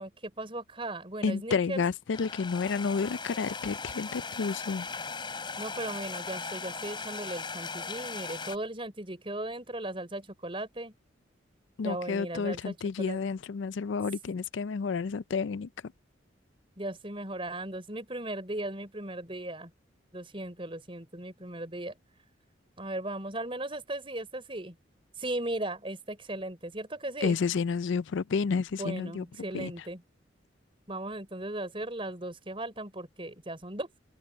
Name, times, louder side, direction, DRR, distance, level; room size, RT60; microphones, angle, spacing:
voice 1, 0.0-1.8 5.6-10.9 11.8-13.2 16.8-19.7 20.1-21.9 22.8-24.8 25.2-27.4 28.8-30.0 30.9-33.9, right 1 dB, 30° right, 5.0 m, -37 dB
voice 2, 1.2-4.9 11.8-15.7 27.2-29.2 29.5-29.7, left 5 dB, 75° left, 0.4 m, -30 dB
sound 1, 2.1-8.6, left 4 dB, 25° left, 6.3 m, -38 dB
open air
head